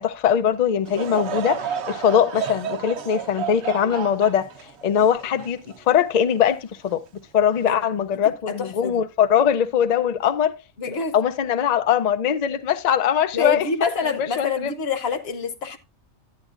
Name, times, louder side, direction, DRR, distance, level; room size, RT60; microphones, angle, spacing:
voice 1, 0.0-4.5 4.8-5.6 5.9-7.0 7.3-10.6 11.1-13.9 14.4-14.7, left 8 dB, 80° left, 0.3 m, -21 dB
Laughter / Crowd, 0.9-6.3 6.9-7.0 7.8-8.0, right 7 dB, 60° right, 0.9 m, -31 dB
voice 2, 3.6-4.0 7.6-7.8 8.1-9.0 10.8-11.2 13.3-15.8, left 5 dB, 55° left, 1.1 m, -27 dB
11.5 x 9.0 x 2.4 m
omnidirectional pair, 1.4 m